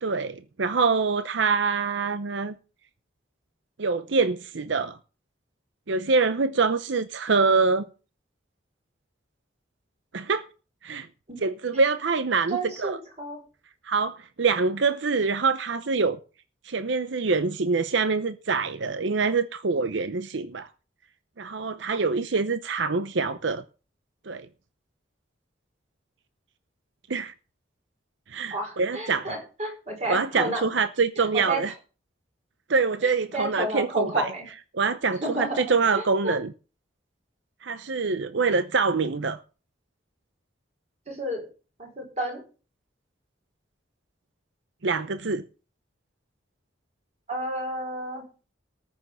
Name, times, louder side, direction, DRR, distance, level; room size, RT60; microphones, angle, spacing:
voice 1, 0.0-2.6 3.8-5.0 5.9-7.9 10.1-10.5 10.8-11.1 11.4-13.0 13.9-16.2 16.6-20.7 21.4-23.6 24.3-24.5 27.1-27.3 28.3-29.3 30.1-31.7 32.7-34.3 34.7-36.5 37.6-39.4 44.8-45.4, right 4 dB, 75° right, 0.7 m, -25 dB
voice 2, 12.5-13.4 28.5-30.7 31.3-31.6 33.3-34.5 35.2-36.4 41.1-41.4 41.8-42.4 47.3-48.2, right 1 dB, 35° right, 5.3 m, -31 dB
14.0 x 6.3 x 6.9 m
head